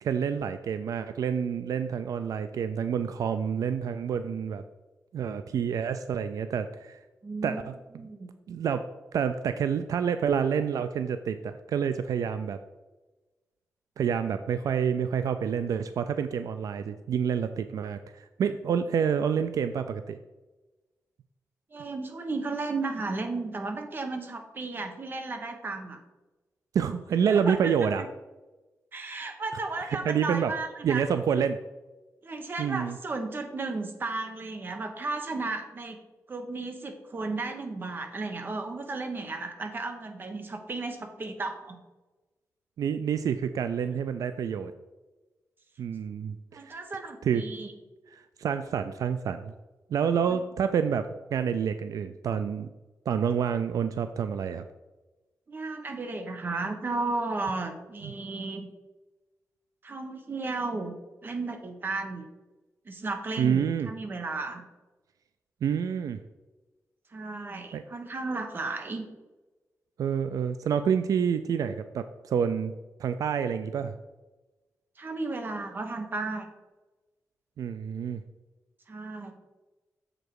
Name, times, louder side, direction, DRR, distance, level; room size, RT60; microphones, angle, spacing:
voice 1, 0.0-4.6 5.1-7.0 7.4-7.7 8.5-12.6 14.0-20.2 26.7-28.0 29.8-30.5 30.8-31.6 32.6-33.0 42.8-44.7 45.8-46.8 47.2-47.4 48.1-49.5 49.9-52.7 53.1-54.6 58.0-58.1 63.4-63.9 65.6-66.2 67.7-67.8 70.0-72.7 73.0-73.9 77.6-78.2, right 7 dB, 80° right, 10 dB, 0.3 m, -28 dB
voice 2, 7.2-7.7 8.0-8.3 21.7-26.0 27.3-27.7 28.0-28.1 28.9-31.1 32.2-36.0 36.3-41.8 46.5-47.7 50.3-50.4 55.5-58.7 59.8-60.9 61.2-62.3 62.8-64.6 67.1-69.1 75.0-76.5 78.9-79.3, right 3 dB, 35° right, 5 dB, 0.9 m, -34 dB
7.3 x 5.0 x 4.7 m, 1.1 s
wide cardioid pair, 135°, 6 cm